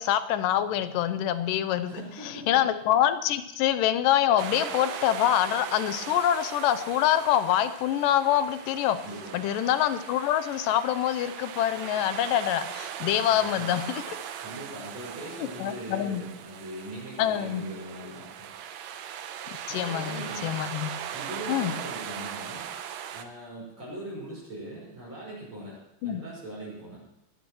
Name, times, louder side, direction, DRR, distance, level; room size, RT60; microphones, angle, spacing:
voice 1, 0.0-2.0 2.5-9.0 9.3-14.2 15.6-16.2 17.2-17.6 19.7-20.9 21.5-21.7 26.0-26.2, left 11 dB, 90° left, 12 dB, 2.4 m, -25 dB
voice 2, 1.8-2.6 9.0-9.4 13.3-13.7 14.4-18.5 19.7-20.5 21.1-22.7 23.1-27.0, right 1 dB, 40° right, -7 dB, 6.2 m, -41 dB
sound 1, 4.4-23.2, right 9 dB, 70° right, 1.9 m, -39 dB
21.0 x 14.0 x 3.1 m, 0.84 s
omnidirectional pair, 3.8 m